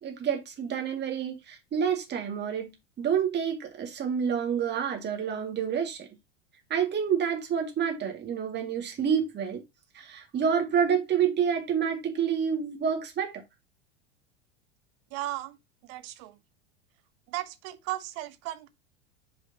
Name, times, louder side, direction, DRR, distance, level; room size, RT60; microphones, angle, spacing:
voice 1, 0.0-2.7 3.0-6.1 6.7-9.6 9.9-13.4, right 7 dB, 30° right, 2.3 m, -28 dB
voice 2, 15.1-15.6 15.9-16.4 17.3-18.7, right 15 dB, 45° right, 1.0 m, -36 dB
8.6 x 4.9 x 2.9 m
figure-of-eight pair, 85°, 36 cm